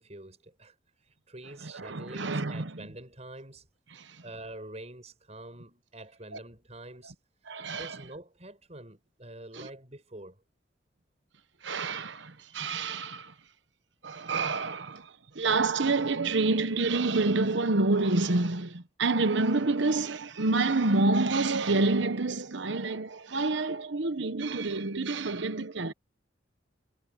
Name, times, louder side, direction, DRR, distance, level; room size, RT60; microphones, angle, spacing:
voice 1, 0.0-3.7 4.2-7.2 7.7-10.4, right 1 dB, 35° right, 7.3 m, -46 dB
voice 2, 1.7-2.7 7.5-8.0 9.6-9.7 11.6-13.3 14.0-25.9, right 3 dB, 70° right, 1.1 m, -28 dB
head